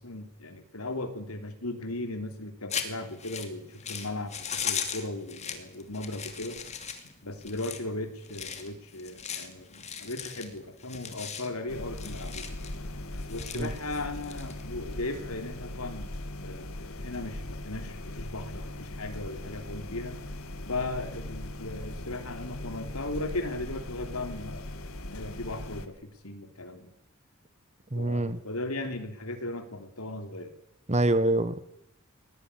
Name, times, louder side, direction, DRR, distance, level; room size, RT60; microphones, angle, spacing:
voice 1, 0.0-6.6 7.2-12.5 13.3-16.1 16.4-20.2 20.7-24.7 25.1-26.9 27.9-30.6, left 2 dB, 90° left, 3.3 m, -37 dB
sound 1, 2.7-15.1, left 7 dB, 30° left, 2.6 m, -38 dB
sound 2, 11.7-25.9, left 1 dB, 75° left, 1.8 m, -39 dB
voice 2, 27.9-28.4 30.9-31.6, right 1 dB, 30° right, 1.1 m, -25 dB
21.0 x 19.0 x 9.8 m
head